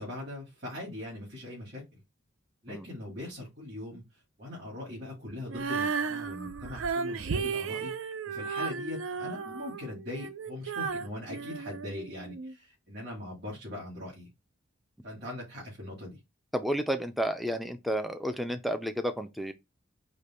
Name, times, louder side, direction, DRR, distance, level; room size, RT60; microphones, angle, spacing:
voice 1, 0.0-2.0 2.6-7.9 8.3-14.3 15.0-16.2, left 1 dB, 50° right, 2.3 m, -41 dB
Female singing, 5.5-12.5, right 5 dB, 75° right, 0.4 m, -34 dB
voice 2, 16.5-19.5, equal, ahead, 0.3 m, -31 dB
5.1 x 2.2 x 4.3 m
head